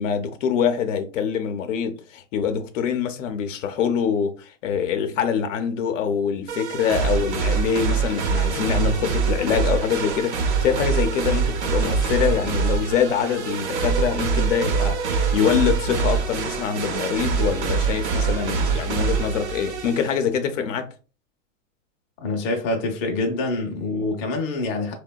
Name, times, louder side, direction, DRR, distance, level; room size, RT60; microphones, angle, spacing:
voice 1, 0.0-20.9, left 7 dB, 70° left, 0.6 m, -24 dB
sound 1, 6.5-20.2, right 5 dB, 60° right, 0.8 m, -24 dB
voice 2, 22.2-24.9, left 2 dB, 25° left, 0.5 m, -26 dB
2.7 x 2.2 x 2.2 m
hypercardioid pair, 125°, 39 cm